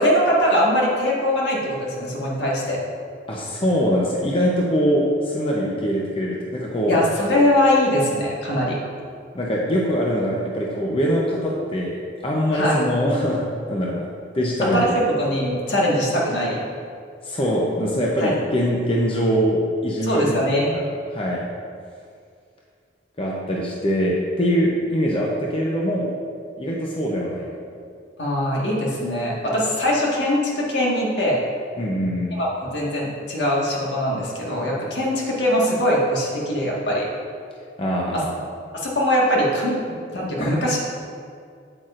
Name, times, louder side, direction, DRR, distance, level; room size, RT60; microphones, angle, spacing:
voice 1, 0.0-2.8 6.9-8.8 12.5-12.8 14.7-16.6 18.2-18.3 20.0-20.8 28.2-31.4 32.4-37.1 38.1-38.2 38.7-40.8, equal, 70° left, -4 dB, 1.6 m, -21 dB
voice 2, 3.3-7.0 9.3-13.4 13.7-14.1 14.3-14.8 17.2-20.3 20.7-21.5 23.2-26.1 26.6-27.5 31.8-32.3 37.8-38.4 40.4-40.5, equal, 30° left, -3 dB, 0.7 m, -23 dB
8.4 x 7.9 x 2.5 m, 2.3 s
head